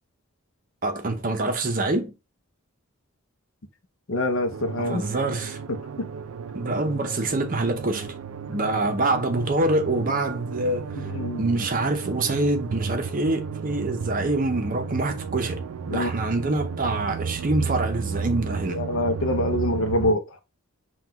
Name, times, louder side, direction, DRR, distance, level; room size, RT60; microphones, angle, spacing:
voice 1, 0.8-2.1 4.8-5.6 6.5-8.1 8.5-11.1 11.4-15.6 15.9-18.8, right 2 dB, 40° right, 0.6 m, -25 dB
voice 2, 4.1-5.0 11.0-11.4 15.9-16.1 18.7-20.4, left 1 dB, 60° left, 0.6 m, -25 dB
sound 1, 4.5-20.1, right 5 dB, 75° right, 0.4 m, -33 dB
5.7 x 2.3 x 2.9 m
head